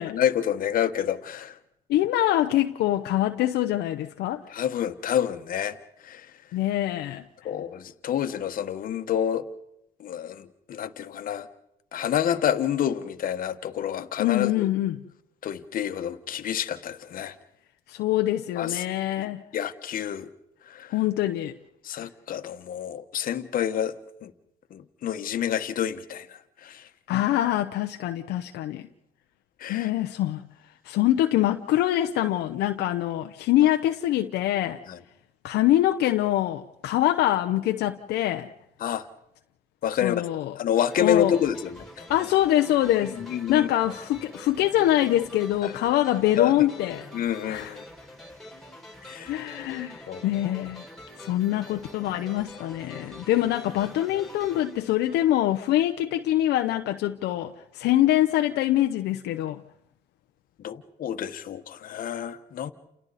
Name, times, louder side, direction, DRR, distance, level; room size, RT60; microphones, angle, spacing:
voice 1, 0.0-1.6 4.5-5.7 6.0-6.3 7.4-9.5 10.0-11.5 11.9-14.7 15.4-17.3 18.6-18.8 19.2-20.3 20.7-21.0 21.8-24.3 24.7-26.9 29.6-29.9 34.9-35.0 38.8-39.1 39.8-40.2 40.6-42.1 43.2-43.7 45.6-45.7 46.4-46.5 47.1-47.8 49.0-49.3 50.1-50.2 60.6-62.7, left 9 dB, 55° left, 1.4 m, -28 dB
voice 2, 1.9-4.4 6.5-7.3 14.2-15.0 17.9-19.4 20.9-21.5 27.1-28.9 29.7-30.4 30.8-34.8 35.4-38.5 40.0-40.6 41.0-41.4 42.1-43.2 43.5-47.1 47.5-47.7 49.3-50.8 51.2-59.6, left 13 dB, 80° left, 0.8 m, -24 dB
sound 1, 40.9-55.7, left 1 dB, ahead, 4.0 m, -46 dB
29.5 x 28.5 x 4.2 m
cardioid pair, 110°, 17 cm